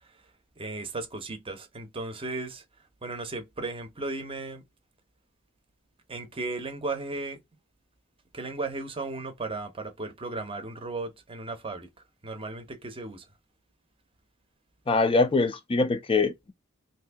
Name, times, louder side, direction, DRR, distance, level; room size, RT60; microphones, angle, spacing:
voice 1, 0.6-2.6 3.0-4.6 6.1-7.4 8.3-11.9 12.2-13.3, right 3 dB, 25° right, 0.7 m, -35 dB
voice 2, 14.9-16.5, left 3 dB, 25° left, 0.4 m, -23 dB
2.8 x 2.6 x 3.3 m
head